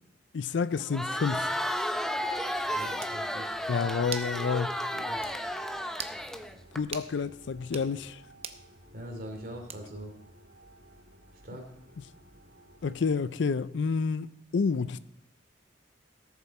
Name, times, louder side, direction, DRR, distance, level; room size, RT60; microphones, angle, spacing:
voice 1, 0.3-1.5 3.7-4.7 6.7-8.2 12.8-15.0, left 5 dB, 65° left, 0.4 m, -29 dB
Crowd, 0.8-6.8, equal, ahead, 0.6 m, -33 dB
sound 1, 1.2-13.2, right 1 dB, 70° right, 1.9 m, -56 dB
voice 2, 2.7-3.6 4.9-5.3 8.9-10.2 11.4-11.7, equal, 50° right, 2.8 m, -42 dB
sound 2, 3.0-3.2 4.1-4.4 4.7-4.8 5.2-5.4 5.9-6.2 6.9-7.1 7.6-7.9 8.4-8.6 9.7-10.0, right 7 dB, 30° right, 0.7 m, -40 dB
18.5 x 7.5 x 4.3 m
head